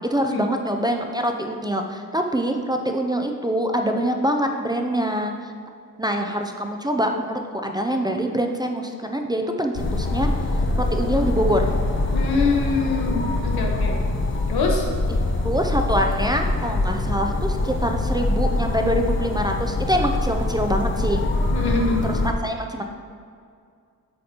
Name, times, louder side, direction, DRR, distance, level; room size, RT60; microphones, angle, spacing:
voice 1, 0.1-5.3 6.0-10.3 10.8-11.7 15.4-21.2 22.1-22.2 22.4-22.8, equal, 10° right, 3 dB, 0.4 m, -24 dB
sound 1, 9.7-22.3, left 2 dB, 35° left, 0.6 m, -24 dB
voice 2, 12.1-14.0 14.5-14.9 21.5-22.1, left 4 dB, 90° left, 1 dB, 1.0 m, -24 dB
8.4 x 5.0 x 2.9 m, 2.2 s
wide cardioid pair, 110°, 36 cm